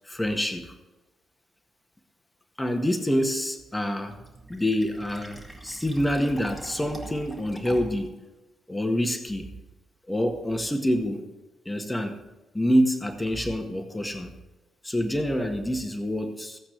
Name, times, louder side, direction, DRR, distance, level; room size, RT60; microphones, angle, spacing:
voice 1, 0.1-0.7 2.6-4.2 4.5-8.1 8.7-9.5 10.1-11.2 11.6-12.2 12.5-14.3 14.8-16.6, equal, 15° left, 5 dB, 1.6 m, -26 dB
Fill (with liquid), 4.1-8.1, right 1 dB, ahead, 2.4 m, -44 dB
15.0 x 8.8 x 3.3 m, 1.1 s
hypercardioid pair, 40°, 0 cm